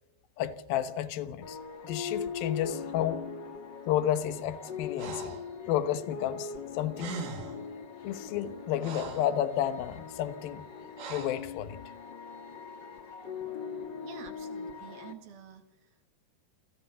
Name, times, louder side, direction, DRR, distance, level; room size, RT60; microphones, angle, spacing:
voice 1, 0.4-1.6 1.8-3.3 3.9-5.3 5.6-7.2 8.0-10.7 11.1-11.8, left 11 dB, 70° left, 2.7 m, -31 dB
sound 1, 1.4-15.1, left 6 dB, 45° left, 1.5 m, -41 dB
Breathing, 5.0-5.5 6.7-6.8 7.0-7.7 8.3-9.4 11.0-11.5, right 4 dB, 85° right, 4.9 m, -41 dB
voice 2, 14.0-16.1, right 8 dB, 65° right, 3.8 m, -50 dB
27.0 x 16.5 x 6.9 m
omnidirectional pair, 4.9 m